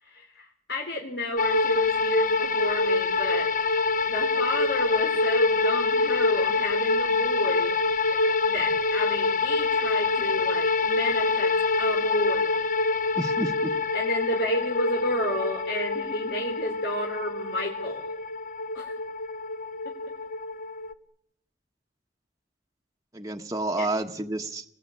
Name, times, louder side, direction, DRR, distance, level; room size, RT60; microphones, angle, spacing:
voice 1, 0.0-3.5 4.1-7.8 8.4-12.6 13.9-18.0 18.7-19.0 23.8-23.9, left 1 dB, 70° left, 0 dB, 4.0 m, -31 dB
sound 1, 1.4-20.9, left 3 dB, 45° left, 1.2 m, -26 dB
voice 2, 13.2-13.7 23.1-24.6, right 2 dB, 20° right, 3 dB, 1.4 m, -30 dB
29.0 x 21.5 x 8.9 m, 0.70 s
head